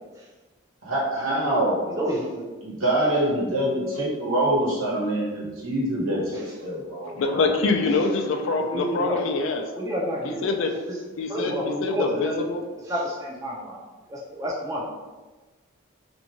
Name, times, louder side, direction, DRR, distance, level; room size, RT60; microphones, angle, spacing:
voice 1, 0.8-2.0 2.6-7.4, right 1 dB, 85° right, -6 dB, 1.1 m, -25 dB
voice 2, 1.9-2.5 6.3-6.5 8.7-9.3 9.7-10.5 10.9-11.0 11.3-12.5 12.8-13.8 14.1-14.9, equal, 15° right, -3 dB, 0.4 m, -29 dB
voice 3, 7.2-9.6 10.2-10.7 11.2-12.6, left 3 dB, 75° left, 4 dB, 0.4 m, -25 dB
2.6 x 2.2 x 2.9 m, 1.2 s
head